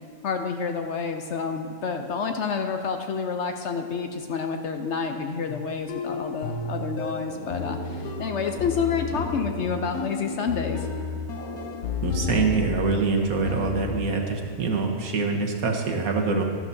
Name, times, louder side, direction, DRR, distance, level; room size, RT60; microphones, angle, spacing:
voice 1, 0.2-10.9, left 5 dB, 65° left, 5 dB, 0.8 m, -29 dB
sound 1, 5.5-13.0 13.4-14.2, left 5 dB, 90° left, 1.2 m, -33 dB
sound 2, 5.8-13.2 14.1-14.6, equal, 30° left, 3.3 m, -41 dB
voice 2, 12.0-16.4, right 4 dB, 75° right, 2 dB, 1.5 m, -25 dB
12.5 x 12.0 x 2.7 m, 2.1 s
omnidirectional pair, 1.5 m